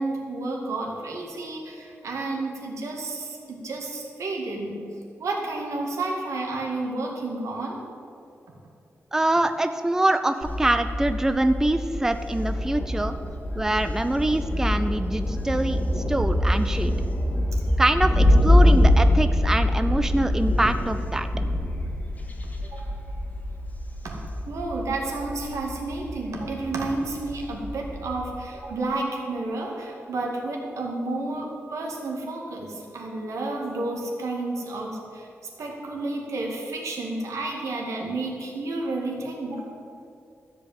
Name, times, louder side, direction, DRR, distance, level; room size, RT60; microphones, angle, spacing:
voice 1, 0.0-4.8 5.2-7.8 22.6-22.9 24.0-24.2 24.5-35.3 35.6-39.7, right 2 dB, 85° right, 0 dB, 2.2 m, -31 dB
voice 2, 9.1-13.1 13.6-16.9 17.8-21.3, right 1 dB, 10° right, 9 dB, 0.4 m, -24 dB
Thunder, 10.4-28.5, left 1 dB, 30° left, 1.3 m, -24 dB
13.5 x 5.0 x 8.8 m, 2.6 s
wide cardioid pair, 150°, 5 cm